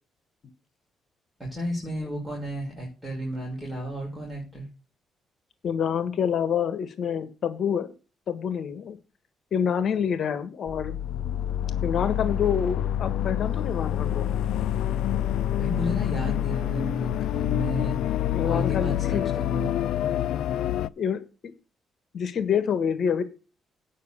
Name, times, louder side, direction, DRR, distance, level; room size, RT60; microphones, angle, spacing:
voice 1, 1.4-4.7 15.6-18.0 18.4-19.7, equal, 5° right, -3 dB, 5.6 m, -33 dB
voice 2, 5.6-7.9 8.3-9.0 9.5-11.0 11.8-14.3 18.3-19.3 21.0-21.2 22.1-23.2, left 7 dB, 60° left, 12 dB, 1.4 m, -27 dB
sound 1, 10.7-20.9, left 11 dB, 80° left, 0.4 m, -27 dB
9.5 x 5.7 x 6.8 m, 0.33 s
cardioid pair, 90°, 0 cm